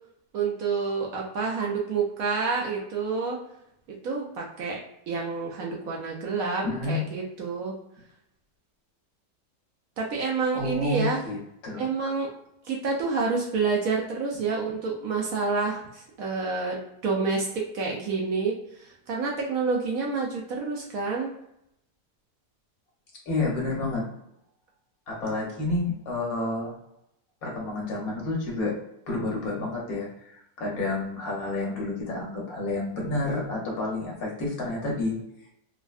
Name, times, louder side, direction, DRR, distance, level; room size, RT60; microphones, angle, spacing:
voice 1, 0.3-3.4 4.0-4.8 5.1-7.7 10.0-11.2 11.8-12.3 12.7-21.3, right 4 dB, 70° right, -2 dB, 0.9 m, -28 dB
voice 2, 6.6-7.0 10.5-11.4 11.6-11.8 23.3-24.0 25.1-26.7 27.4-28.7 29.1-35.2, left 2 dB, 65° left, -2 dB, 1.2 m, -29 dB
3.5 x 2.1 x 2.3 m, 0.78 s
omnidirectional pair, 1.8 m